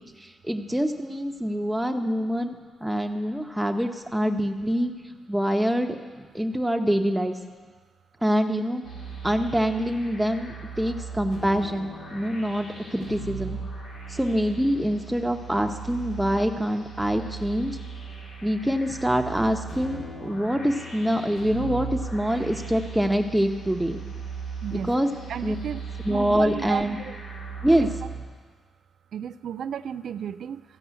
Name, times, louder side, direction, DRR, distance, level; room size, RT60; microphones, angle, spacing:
voice 1, 0.4-4.9 5.3-6.0 6.3-7.3 8.2-8.8 9.2-13.6 14.1-17.8 18.4-21.9 22.1-24.0 24.7-25.1 25.4-25.6 26.0-27.0 27.6-27.9, equal, 5° right, 5 dB, 1.1 m, -25 dB
sound 1, 8.8-28.2, right 4 dB, 85° left, 2.4 m, -38 dB
voice 2, 24.6-24.9 25.3-25.8 26.1-27.2 27.8-27.9 29.1-30.6, right 8 dB, 75° right, 13 dB, 0.4 m, -33 dB
14.0 x 5.4 x 8.3 m, 1.5 s
supercardioid pair, 60°, 0 cm